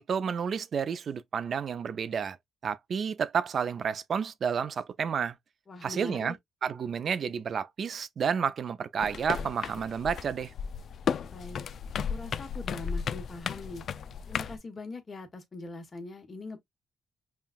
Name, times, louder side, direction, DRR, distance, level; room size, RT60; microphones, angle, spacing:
voice 1, 0.0-2.4 2.6-5.3 5.8-6.3 6.6-10.5, right 7 dB, 55° right, 0.5 m, -30 dB
voice 2, 5.7-6.4 11.3-11.6 12.1-13.8 14.2-16.6, left 2 dB, 35° left, 1.3 m, -41 dB
sound 1, 9.0-14.6, left 7 dB, 60° left, 0.3 m, -34 dB
5.6 x 2.4 x 2.4 m
cardioid pair, 90°, 0 cm